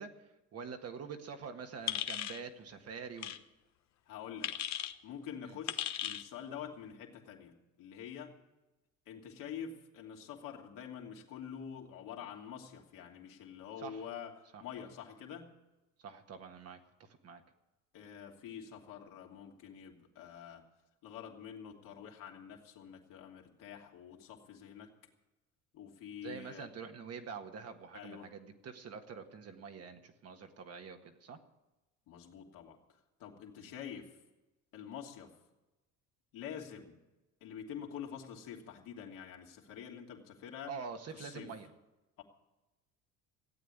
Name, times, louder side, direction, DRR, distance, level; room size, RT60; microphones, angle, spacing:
voice 1, 0.0-3.3 5.4-5.6 13.8-14.1 14.5-14.6 16.0-17.4 26.2-31.4 33.6-33.7 40.7-41.7, right 6 dB, 45° right, 5 dB, 1.8 m, -46 dB
sound 1, 1.9-2.4 3.2-3.4 4.4-4.9 5.7-6.2, left 11 dB, 55° left, 1.0 m, -36 dB
voice 2, 4.1-4.5 5.0-8.3 9.1-14.3 14.6-15.5 17.9-20.6 21.0-24.9 25.7-26.7 27.9-28.3 32.1-32.8 33.2-34.1 34.7-35.3 36.3-37.0 37.4-40.7 41.1-41.5 42.2-42.3, left 8 dB, 70° left, 0 dB, 2.8 m, -47 dB
15.5 x 8.5 x 9.7 m, 1.0 s
supercardioid pair, 100°, 33 cm